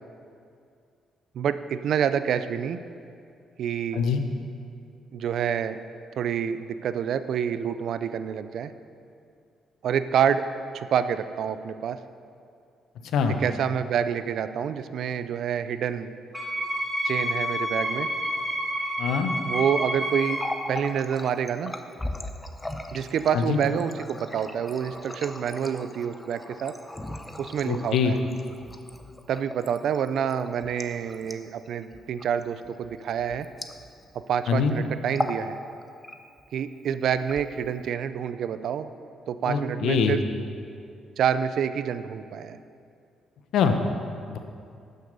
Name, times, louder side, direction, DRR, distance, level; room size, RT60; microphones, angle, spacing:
voice 1, 1.3-2.8 3.6-4.0 5.1-5.8 6.2-8.7 9.8-10.4 10.7-12.0 13.3-16.1 17.0-18.1 19.5-20.4 20.7-21.8 22.9-26.7 27.4-28.2 29.3-33.5 34.3-35.6 36.5-38.9 39.3-40.2 41.2-42.6, right 8 dB, 70° right, 12 dB, 0.4 m, -27 dB
Wind instrument woodwind instrument, 16.3-20.6, equal, ahead, 2.6 m, -29 dB
voice 2, 19.0-19.3 23.3-23.6 27.7-28.1 34.5-34.7 39.5-40.1 43.5-43.7 44.3-44.4, left 6 dB, 75° left, 6 dB, 0.9 m, -23 dB
Water tap faucet, 20.2-34.2 34.5-34.7 35.0-35.5 35.8-36.5 37.1-37.9, left 1 dB, 15° left, 0.7 m, -38 dB
11.5 x 6.5 x 5.4 m, 2.4 s
cardioid pair, 90°, 0 cm